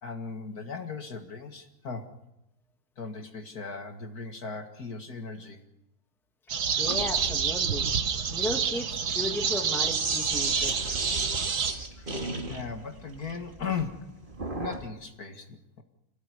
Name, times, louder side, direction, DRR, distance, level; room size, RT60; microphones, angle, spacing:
voice 1, 0.0-2.1 3.0-5.6 12.0-12.2 12.5-14.2 14.5-15.8, left 5 dB, 55° left, 5 dB, 2.2 m, -37 dB
sound 1, 6.5-11.7, right 7 dB, 60° right, 1.8 m, -28 dB
voice 2, 6.8-7.9 8.3-10.8, left 1 dB, ahead, 5 dB, 1.6 m, -35 dB
Sink (filling or washing), 6.8-14.9, right 2 dB, 30° right, 2.1 m, -35 dB
27.0 x 17.5 x 9.7 m, 0.91 s
omnidirectional pair, 2.0 m